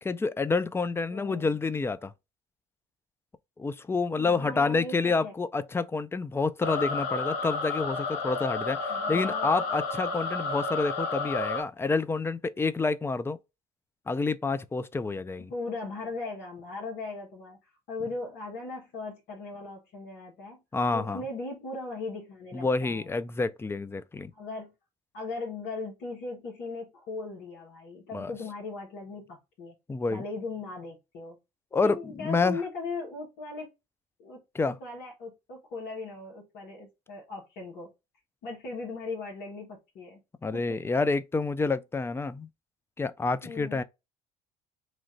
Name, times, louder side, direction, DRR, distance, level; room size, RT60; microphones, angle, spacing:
voice 1, 0.0-2.1 3.6-13.4 14.1-15.5 20.7-21.2 22.5-24.3 28.1-28.3 29.9-30.2 31.7-32.6 34.5-34.8 40.4-42.5 43.0-43.8, left 3 dB, 15° left, 0.4 m, -28 dB
voice 2, 1.1-1.6 4.2-5.3 8.9-9.5 15.4-20.6 20.9-23.1 24.3-24.7 25.1-29.7 30.1-31.4 31.8-33.7 34.2-37.9 38.4-40.2 40.5-40.8 43.4-43.8, left 3 dB, 65° left, 1.4 m, -38 dB
sound 1, 6.6-11.6, left 3 dB, 85° left, 0.9 m, -31 dB
3.1 x 2.5 x 4.2 m
supercardioid pair, 80°, 18 cm